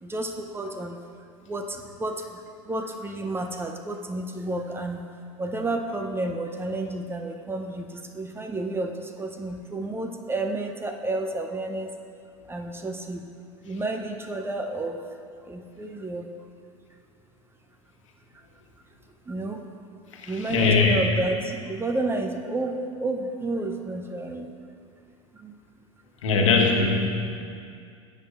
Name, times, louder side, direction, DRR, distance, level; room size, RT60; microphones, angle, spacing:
voice 1, 0.0-1.0 1.4-5.0 5.4-11.9 12.5-13.2 13.6-15.0 15.5-16.3 19.3-19.7 20.2-24.5 25.3-25.5, right 2 dB, 15° right, 4 dB, 0.6 m, -31 dB
voice 2, 20.2-21.0 26.2-27.1, left 4 dB, 65° left, 1 dB, 1.4 m, -21 dB
16.0 x 7.7 x 2.5 m, 2.4 s
figure-of-eight pair, 80°, 17 cm